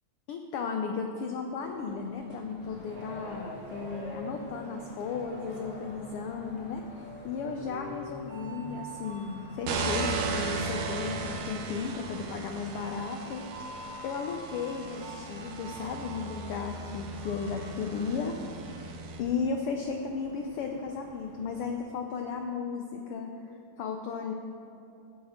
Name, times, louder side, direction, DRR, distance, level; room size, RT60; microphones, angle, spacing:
voice 1, 0.3-23.3 23.8-24.3, left 5 dB, 85° left, 4 dB, 1.2 m, -35 dB
sound 1, 1.6-17.7, equal, 40° right, 1.8 m, -46 dB
sound 2, 2.6-21.8, left 2 dB, 60° left, 2.0 m, -50 dB
sound 3, 9.6-19.2, right 4 dB, 70° right, 2.0 m, -36 dB
16.0 x 8.8 x 3.6 m, 2.7 s
omnidirectional pair, 3.3 m